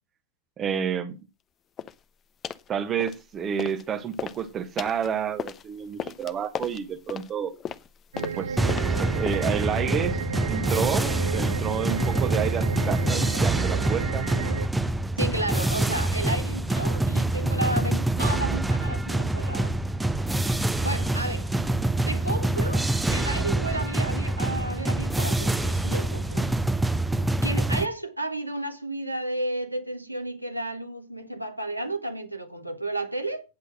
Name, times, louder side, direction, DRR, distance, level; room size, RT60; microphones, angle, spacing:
voice 1, 0.6-1.2 2.7-7.5 8.3-10.2 10.5-14.3, right 8 dB, 25° right, 1.2 m, -30 dB
sound 1, 1.8-2.0 2.4-2.7 3.0-3.8 4.1-9.7, left 8 dB, 25° left, 0.8 m, -37 dB
sound 2, 8.1-14.7, right 6 dB, 65° right, 0.6 m, -33 dB
sound 3, 8.6-27.9, right 2 dB, 5° right, 0.8 m, -26 dB
voice 2, 15.2-19.7 20.8-21.5 22.0-26.5 27.4-33.4, right 1 dB, 90° right, 1.8 m, -32 dB
9.7 x 8.2 x 6.2 m
figure-of-eight pair, 90°, 0 cm